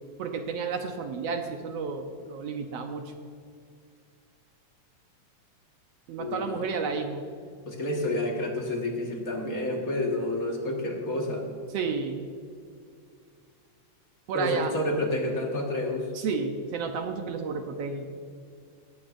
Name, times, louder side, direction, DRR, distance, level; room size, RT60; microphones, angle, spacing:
voice 1, 0.2-3.1 6.1-7.2 11.7-12.3 14.3-14.7 16.1-18.1, right 5 dB, 70° right, 5 dB, 1.7 m, -31 dB
voice 2, 6.2-6.7 7.6-11.5 14.3-16.1, left 1 dB, 35° left, 0 dB, 1.7 m, -29 dB
18.5 x 14.0 x 2.6 m, 2.2 s
omnidirectional pair, 3.4 m